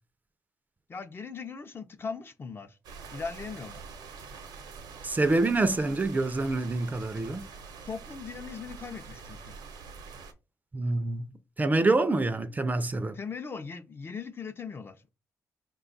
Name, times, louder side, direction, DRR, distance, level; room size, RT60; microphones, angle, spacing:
voice 1, 0.9-2.8 3.1-3.8 7.8-9.5 13.1-15.1, left 5 dB, 35° left, 0.5 m, -39 dB
sound 1, 2.8-10.3, right 5 dB, 80° right, 0.7 m, -45 dB
voice 2, 5.0-7.4 10.7-11.3 11.6-13.2, right 2 dB, 25° right, 0.4 m, -26 dB
4.8 x 2.3 x 3.9 m
cardioid pair, 80°, 7 cm